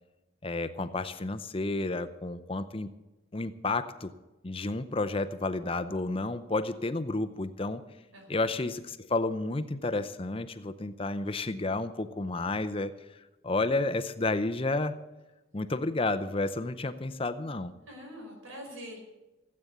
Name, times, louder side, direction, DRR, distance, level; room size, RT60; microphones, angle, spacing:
voice 1, 0.4-2.9 3.3-4.1 4.4-7.8 8.3-12.9 13.4-15.0 15.5-17.7, left 2 dB, 25° left, 10 dB, 0.6 m, -31 dB
voice 2, 8.1-8.5 17.9-19.0, equal, 85° right, 1 dB, 5.2 m, -44 dB
16.5 x 8.7 x 8.0 m, 1.1 s
head